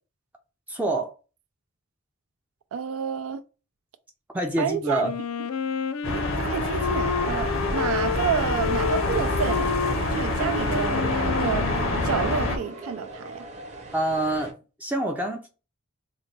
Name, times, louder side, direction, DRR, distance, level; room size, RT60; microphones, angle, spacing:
voice 1, 0.7-1.1 4.3-5.1 13.9-15.5, right 1 dB, 5° right, 0.4 m, -26 dB
voice 2, 2.7-3.4 4.6-5.0 6.1-11.6 12.0-13.4, right 7 dB, 90° right, 0.4 m, -29 dB
Wind instrument woodwind instrument, 5.0-12.7, left 6 dB, 90° left, 0.4 m, -30 dB
sound 1, 6.0-12.6, left 2 dB, 75° left, 0.8 m, -27 dB
sound 2, 8.7-14.5, right 3 dB, 35° right, 0.8 m, -41 dB
3.9 x 2.2 x 3.2 m
head